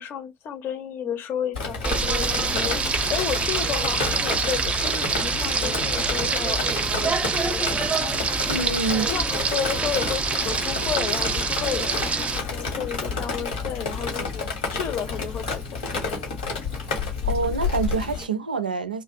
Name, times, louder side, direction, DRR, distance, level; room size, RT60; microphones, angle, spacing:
voice 1, 0.0-2.8 3.1-7.7 8.6-8.7 9.0-14.4 14.7-16.3, left 8 dB, 50° left, 0.7 m, -32 dB
Drip, 1.5-18.2, left 4 dB, 75° left, 1.1 m, -30 dB
Frying (food), 1.8-12.4, right 4 dB, 25° right, 0.5 m, -25 dB
voice 2, 8.4-9.1 17.2-19.0, right 4 dB, 90° right, 0.3 m, -26 dB
2.5 x 2.1 x 2.5 m
figure-of-eight pair, 60°, 5 cm